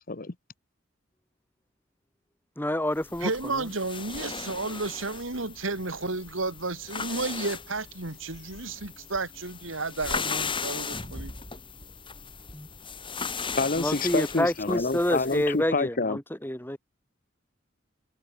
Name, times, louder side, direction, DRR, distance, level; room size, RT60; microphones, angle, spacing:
voice 1, 2.6-3.7 12.5-12.7 13.8-16.8, left 1 dB, 10° left, 3.4 m, -28 dB
sound 1, 3.0-15.5, left 5 dB, 25° left, 4.4 m, -37 dB
voice 2, 3.2-11.3, right 3 dB, 90° right, 2.5 m, -32 dB
voice 3, 13.6-16.2, left 3 dB, 45° left, 1.1 m, -27 dB
head